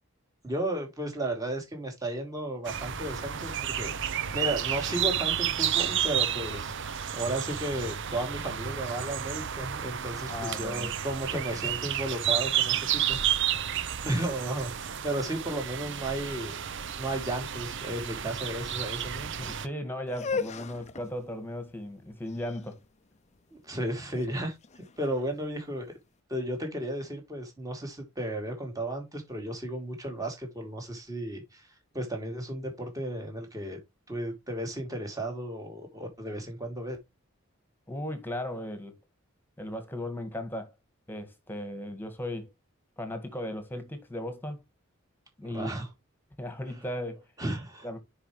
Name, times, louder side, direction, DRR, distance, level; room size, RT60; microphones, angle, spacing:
voice 1, 0.4-16.6 17.0-19.3 23.6-25.9 26.3-31.7 31.9-33.8 34.1-37.0 45.5-45.9 47.4-47.9, right 1 dB, 15° right, 3.0 m, -34 dB
sound 1, 2.7-19.7, right 9 dB, 60° right, 0.7 m, -31 dB
voice 2, 10.3-11.0 11.6-11.7 19.3-22.8 37.9-39.0 39.6-40.7 41.1-42.5 43.0-44.6 45.4-45.8 46.4-47.2 47.8-48.0, left 1 dB, 10° left, 2.0 m, -36 dB
sound 2, 20.1-26.0, left 5 dB, 30° left, 0.5 m, -38 dB
9.9 x 5.1 x 3.2 m
head